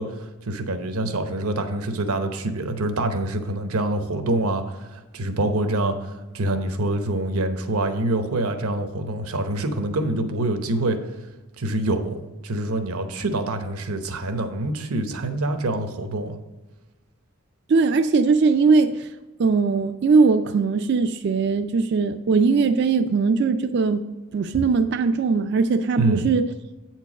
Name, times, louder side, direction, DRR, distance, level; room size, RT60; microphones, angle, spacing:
voice 1, 0.0-11.0 11.6-16.4 26.0-26.3, right 2 dB, 80° right, 7 dB, 0.9 m, -26 dB
voice 2, 17.7-19.1 19.4-24.0 24.3-26.5, right 4 dB, 50° right, 9 dB, 0.3 m, -20 dB
8.5 x 4.6 x 6.0 m, 1.1 s
head